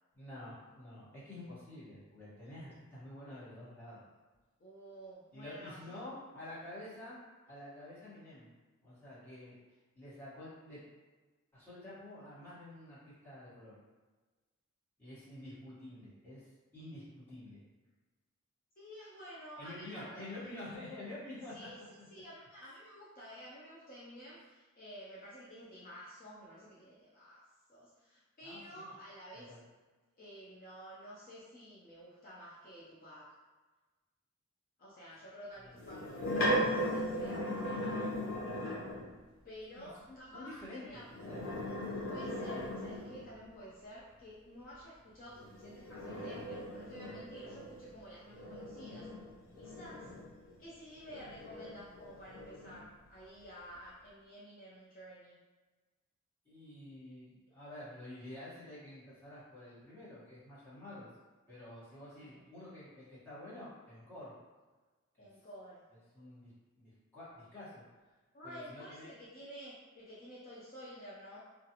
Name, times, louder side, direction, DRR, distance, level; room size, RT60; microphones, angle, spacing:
voice 1, 0.1-4.1 5.3-7.2 7.5-8.5 8.8-9.6 9.9-10.8 11.5-13.7 15.0-16.4 16.7-17.6 19.6-21.5 22.0-22.1 28.4-28.9 29.3-29.6 35.6-36.1 39.7-41.4 56.4-61.1 61.5-64.3 65.2-65.3 66.1-66.5 66.8-67.8 68.4-69.1, left 1 dB, 10° left, -12 dB, 1.2 m, -49 dB
voice 2, 4.6-6.0 18.8-20.6 21.5-29.5 30.2-33.4 34.8-38.2 39.4-41.0 42.1-49.1 49.6-50.1 50.6-55.4 62.2-62.4 65.2-65.9 68.3-71.4, equal, 45° left, -7 dB, 0.5 m, -51 dB
sound 1, 35.8-39.1 41.0-43.4 45.3-50.6 51.1-52.8, equal, 85° left, 0.7 m, -38 dB
2.4 x 2.4 x 2.8 m, 1.3 s
head